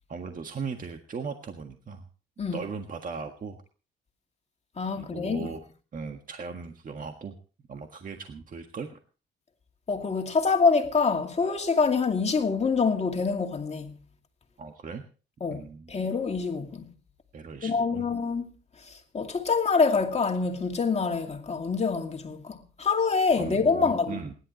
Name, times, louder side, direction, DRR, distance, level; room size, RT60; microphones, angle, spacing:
voice 1, 0.1-2.0 2.5-3.6 4.9-5.6 5.9-7.4 7.7-9.0 14.6-15.0 15.5-15.9 17.3-18.1 22.3-22.4 23.4-24.3, right 5 dB, 40° right, 1.6 m, -38 dB
voice 2, 4.8-5.5 9.9-14.0 15.4-16.9 17.6-18.5 19.1-24.2, left 4 dB, 35° left, 2.4 m, -26 dB
28.0 x 11.5 x 3.0 m
cardioid pair, 90°, 20 cm